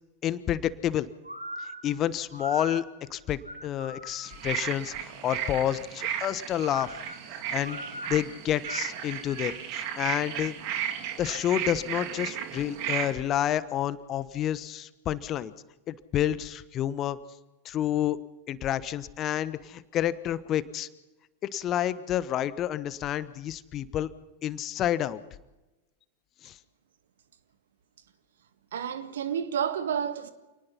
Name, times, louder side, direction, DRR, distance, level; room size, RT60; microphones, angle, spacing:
voice 1, 0.2-1.1 1.8-2.8 3.1-6.9 7.3-10.5 11.2-15.5 15.9-17.2 17.6-18.2 18.5-20.9 21.5-24.1 24.4-25.2 26.4-26.6, left 11 dB, 30° left, 1.2 m, -29 dB
sound 1, 1.2-4.6 6.6-9.7, equal, 85° right, 2.9 m, -41 dB
sound 2, 4.2-13.1, right 10 dB, 45° right, 2.4 m, -34 dB
voice 2, 28.7-30.3, right 8 dB, 60° right, 1.8 m, -30 dB
28.5 x 19.0 x 5.8 m
figure-of-eight pair, 90°, 0 cm